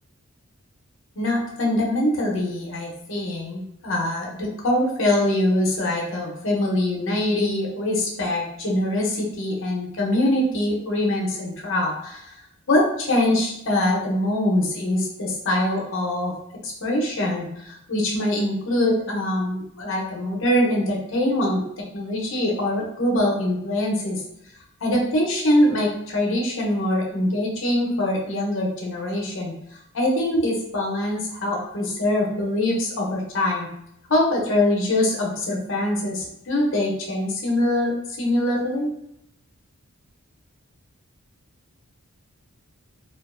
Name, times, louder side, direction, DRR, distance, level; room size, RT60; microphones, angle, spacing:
voice 1, 1.2-12.3 12.7-16.3 16.6-21.6 21.9-24.2 24.8-29.5 29.9-33.7 34.1-37.9 38.2-38.9, left 1 dB, 60° left, -2 dB, 0.6 m, -23 dB
2.4 x 2.2 x 2.4 m, 0.78 s
head